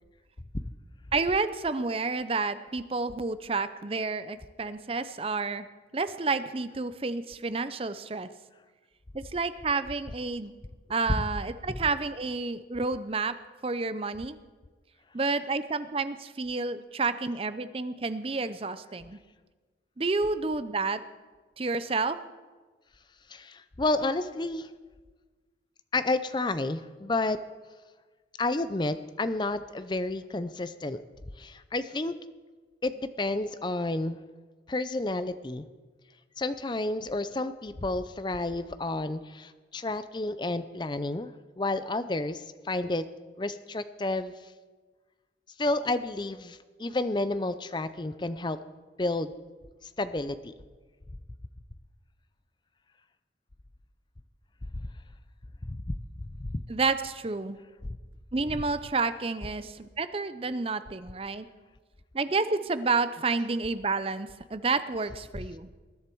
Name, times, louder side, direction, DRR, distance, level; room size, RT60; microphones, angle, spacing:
voice 1, 1.1-5.7 5.9-8.3 9.1-10.5 10.9-13.3 13.6-14.4 15.1-19.2 20.0-21.0 21.6-22.2 56.7-57.6 58.3-61.5 62.1-65.7, right 4 dB, 30° right, 13 dB, 0.6 m, -30 dB
voice 2, 23.3-24.7 25.9-27.4 28.4-31.0 31.4-32.1 32.8-34.2 34.7-35.7 36.4-41.3 41.6-43.0 43.4-44.4 45.6-48.6 49.0-49.3 50.0-50.5 54.7-54.8 55.6-55.8 56.4-56.6, left 2 dB, 25° left, 12 dB, 0.5 m, -30 dB
20.5 x 11.0 x 4.6 m, 1.4 s
head